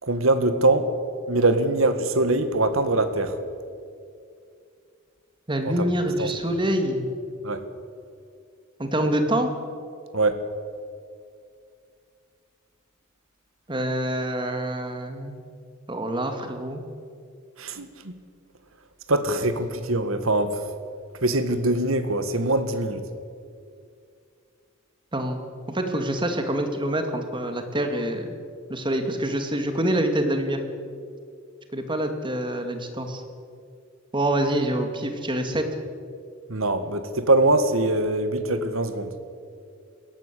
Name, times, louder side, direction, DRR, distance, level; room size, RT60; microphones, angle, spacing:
voice 1, 0.0-0.9 1.3-3.4 5.7-5.9 6.2-6.3 7.4-7.6 10.1-10.4 17.6-18.2 19.1-20.6 21.2-23.0 36.5-39.2, right 2 dB, 75° right, 10 dB, 1.9 m, -23 dB
voice 2, 5.5-7.1 8.8-9.5 13.7-15.3 15.9-16.8 25.1-25.4 25.7-28.3 28.7-30.6 31.7-33.2 34.1-35.7, right 1 dB, 25° right, 6 dB, 2.2 m, -26 dB
21.0 x 18.0 x 8.4 m, 2.3 s
head